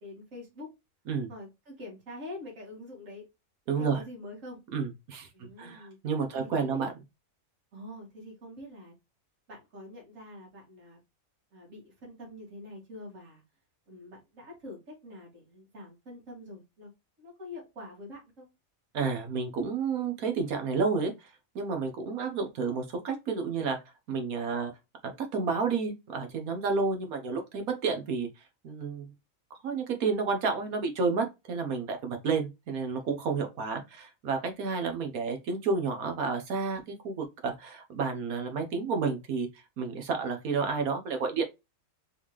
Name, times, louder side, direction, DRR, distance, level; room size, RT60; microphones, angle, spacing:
voice 1, 0.0-0.7 1.3-3.2 3.8-4.6 5.3-6.0 6.3-6.9 7.7-8.9 9.5-11.0 11.5-13.4 13.9-16.9 17.2-18.5, left 1 dB, 65° right, 2.3 m, -45 dB
voice 2, 3.7-4.0 4.7-6.9 18.9-23.8 24.1-24.7 25.0-28.3 28.6-29.1 29.6-41.4, right 4 dB, 85° right, 1.5 m, -31 dB
4.1 x 3.6 x 3.1 m
omnidirectional pair, 1.5 m